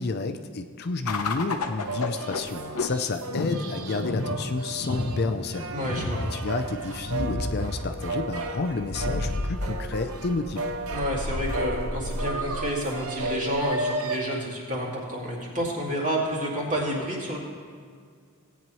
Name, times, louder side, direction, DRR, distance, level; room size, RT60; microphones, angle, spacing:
voice 1, 0.0-10.7, left 3 dB, 45° left, 7 dB, 0.5 m, -30 dB
sound 1, 1.1-13.7, left 2 dB, 85° left, 0.8 m, -32 dB
sound 2, 1.8-14.2, right 2 dB, 75° right, 0.8 m, -34 dB
voice 2, 5.7-6.2 10.9-17.4, equal, 35° right, -4 dB, 2.4 m, -29 dB
17.5 x 8.9 x 3.1 m, 2.1 s
head